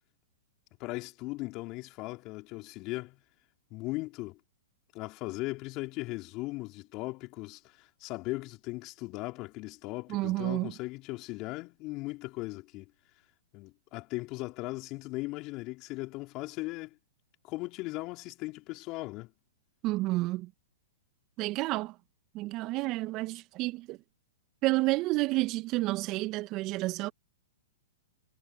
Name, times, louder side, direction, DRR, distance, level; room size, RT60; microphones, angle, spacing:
voice 1, 0.8-3.2 3.7-4.4 4.9-12.9 13.5-17.0 17.4-19.3, left 22 dB, 40° left, 4.3 m, -38 dB
voice 2, 10.1-10.7 19.8-20.5 21.4-22.0 22.3-24.0 24.6-27.1, right 20 dB, 35° right, 1.8 m, -30 dB
hypercardioid pair, 115°, 0 cm